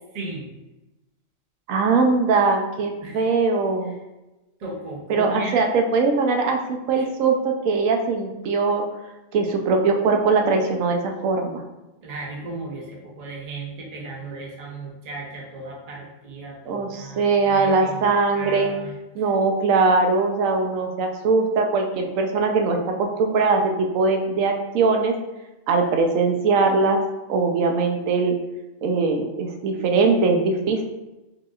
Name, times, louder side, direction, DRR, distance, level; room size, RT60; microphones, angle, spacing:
voice 1, 0.1-0.5 3.0-3.3 3.8-4.0 4.6-5.6 6.9-7.0 12.0-19.2, right 2 dB, 40° right, -1 dB, 0.7 m, -36 dB
voice 2, 1.7-3.9 5.1-8.8 9.3-11.6 16.7-18.7 19.2-25.2 25.7-27.0 27.3-28.4 28.8-30.8, right 4 dB, 80° right, 3 dB, 1.0 m, -21 dB
4.8 x 2.8 x 2.3 m, 1.0 s
omnidirectional pair, 1.4 m